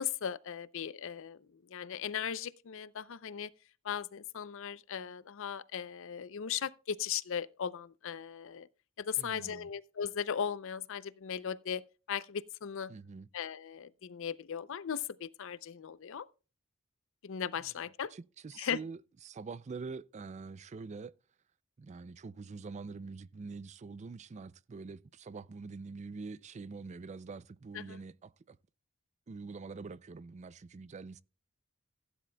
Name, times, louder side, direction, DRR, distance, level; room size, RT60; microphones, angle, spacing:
voice 1, 0.0-3.5 3.8-8.7 9.0-11.8 12.1-12.9 13.3-16.3 17.2-18.1 18.6-18.8 27.7-28.0, left 8 dB, 65° left, 0.5 m, -37 dB
voice 2, 9.2-9.7 12.9-13.3 18.1-19.0 19.2-21.1 21.8-28.6 29.3-31.2, right 4 dB, 35° right, 0.4 m, -45 dB
16.0 x 10.0 x 2.2 m
head